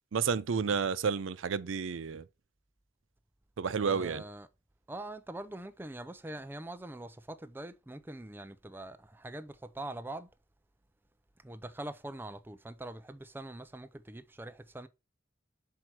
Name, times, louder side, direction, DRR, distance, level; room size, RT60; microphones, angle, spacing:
voice 1, 0.1-2.2 3.6-4.2, right 6 dB, 90° right, 0.5 m, -31 dB
voice 2, 3.8-4.5 4.9-10.3 11.4-14.9, right 1 dB, 10° right, 0.4 m, -43 dB
6.1 x 4.7 x 4.3 m
head